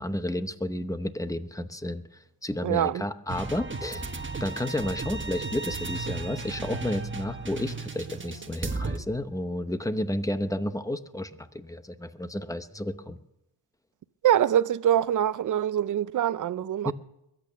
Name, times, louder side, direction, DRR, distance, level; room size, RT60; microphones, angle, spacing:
voice 1, 0.0-2.0 2.4-4.1 4.4-13.2 16.8-16.9, left 1 dB, 5° left, 0.8 m, -31 dB
voice 2, 2.6-3.0 14.2-16.9, right 10 dB, 40° right, 0.5 m, -24 dB
sound 1, 3.3-9.0, right 3 dB, 25° right, 1.4 m, -35 dB
22.5 x 8.7 x 6.9 m
cardioid pair, 110°, 47 cm